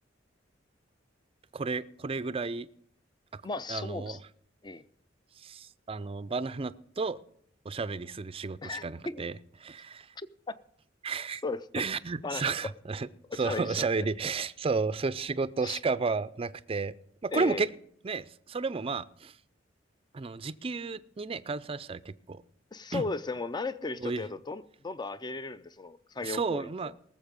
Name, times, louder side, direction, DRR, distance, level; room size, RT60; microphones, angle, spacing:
voice 1, 1.5-2.7 3.3-3.4 3.7-4.2 5.4-7.2 7.7-9.3 9.6-10.1 11.0-11.4 11.7-13.1 13.4-16.9 17.2-17.7 18.0-19.3 20.1-22.4 22.9-23.0 24.0-24.2 26.2-26.9, right 4 dB, 30° right, 0.4 m, -32 dB
voice 2, 3.4-4.2 4.6-4.8 8.6-9.3 10.2-10.6 11.4-11.8 12.2-12.7 13.3-13.9 15.6-15.8 17.3-17.7 22.7-26.9, left 3 dB, 25° left, 0.5 m, -36 dB
19.0 x 7.3 x 5.2 m
head